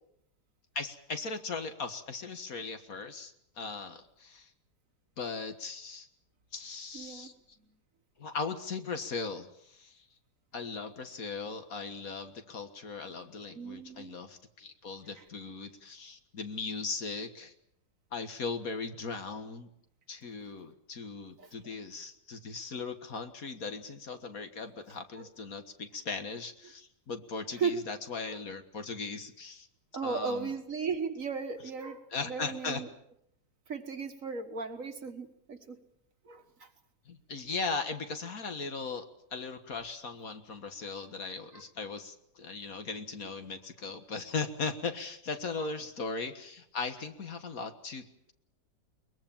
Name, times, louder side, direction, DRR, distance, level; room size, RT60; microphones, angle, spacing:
voice 1, 0.8-4.5 5.2-6.1 6.5-7.3 8.2-10.1 10.5-17.5 18.1-19.7 20.1-29.7 30.0-30.5 32.1-32.8 37.1-48.3, left 4 dB, 55° left, 7 dB, 1.9 m, -38 dB
voice 2, 6.9-7.3 13.5-14.2 21.4-21.5 25.2-25.3 27.5-27.8 28.3-28.4 29.9-32.9 33.7-35.8 36.3-36.7 41.5-41.6 45.6-45.7, right 5 dB, 50° right, 7 dB, 1.9 m, -36 dB
22.5 x 21.0 x 7.3 m, 0.74 s
omnidirectional pair, 1.8 m